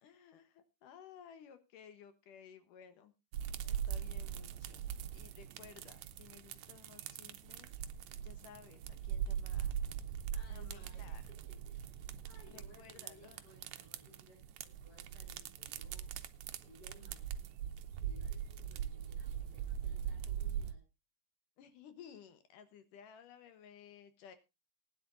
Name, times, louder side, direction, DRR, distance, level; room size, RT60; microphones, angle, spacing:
voice 1, 0.0-3.1 3.6-7.7 8.2-9.9 10.5-11.3 12.5-13.4 21.6-24.4, left 8 dB, 70° left, 10 dB, 2.7 m, -57 dB
sound 1, 3.3-20.7, right 9 dB, 70° right, 1.8 m, -41 dB
voice 2, 10.3-17.4 17.9-20.8, left 2 dB, 30° left, -1 dB, 5.9 m, -62 dB
19.5 x 10.0 x 2.6 m, 0.25 s
omnidirectional pair, 3.9 m